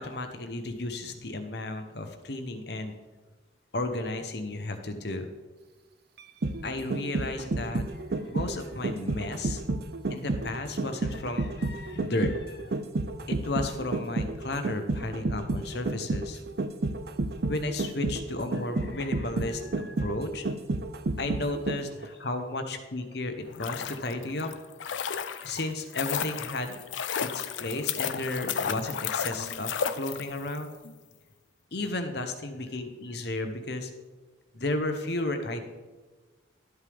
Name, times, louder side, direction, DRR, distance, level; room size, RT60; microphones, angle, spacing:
voice 1, 0.0-2.9 3.7-5.3 6.6-7.8 8.1-9.6 10.1-12.8 13.3-16.4 17.5-20.5 21.2-24.5 24.9-26.8 27.2-30.7 31.7-33.9 34.5-35.6, left 2 dB, 55° left, 7 dB, 1.0 m, -33 dB
sound 1, 6.2-22.1 22.4-22.5, right 2 dB, 55° right, 0.5 m, -31 dB
sound 2, 23.4-30.6 30.8-30.9, left 7 dB, 75° left, 0.5 m, -33 dB
12.5 x 8.1 x 3.5 m, 1.3 s
head